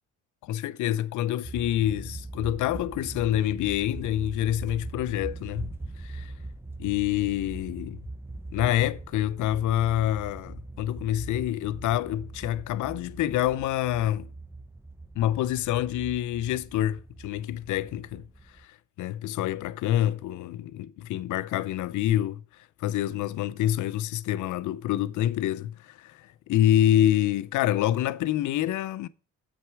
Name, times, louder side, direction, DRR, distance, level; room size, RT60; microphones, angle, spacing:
voice 1, 0.4-5.7 6.0-6.3 6.8-8.0 8.5-14.3 15.2-18.2 18.6-22.4 22.8-29.1, left 12 dB, 80° left, 0.6 m, -27 dB
sound 1, 1.4-18.6, right 2 dB, 10° right, 0.7 m, -41 dB
7.8 x 6.4 x 4.6 m
cardioid pair, 90°, 30 cm